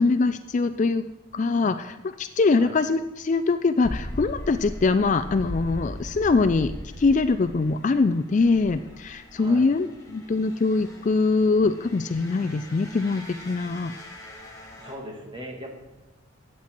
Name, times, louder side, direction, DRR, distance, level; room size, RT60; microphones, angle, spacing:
voice 1, 0.0-6.7 7.0-13.9, left 3 dB, 35° left, 11 dB, 0.3 m, -23 dB
sound 1, 3.8-14.9, left 1 dB, 15° left, 1.6 m, -40 dB
voice 2, 9.3-9.7 14.8-15.7, equal, 20° right, 1 dB, 2.0 m, -39 dB
13.5 x 8.8 x 4.5 m, 1.0 s
head